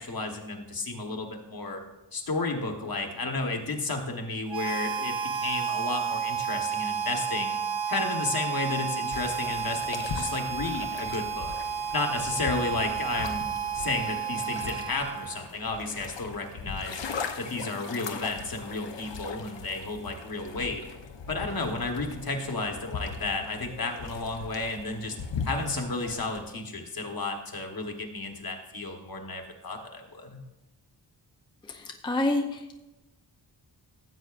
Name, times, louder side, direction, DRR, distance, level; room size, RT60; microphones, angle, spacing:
voice 1, 0.0-1.8 2.1-7.6 7.9-11.5 11.9-17.0 17.4-20.8 21.3-25.2 25.4-30.4, left 3 dB, 50° left, 3 dB, 1.3 m, -32 dB
Harmonica, 4.5-15.5, right 7 dB, 80° right, 1.2 m, -32 dB
sound 1, 9.1-26.4, left 5 dB, 70° left, 0.9 m, -39 dB
voice 2, 31.7-32.8, left 2 dB, 10° left, 3 dB, 0.5 m, -29 dB
15.0 x 7.7 x 2.5 m, 0.97 s
wide cardioid pair, 140°, 45 cm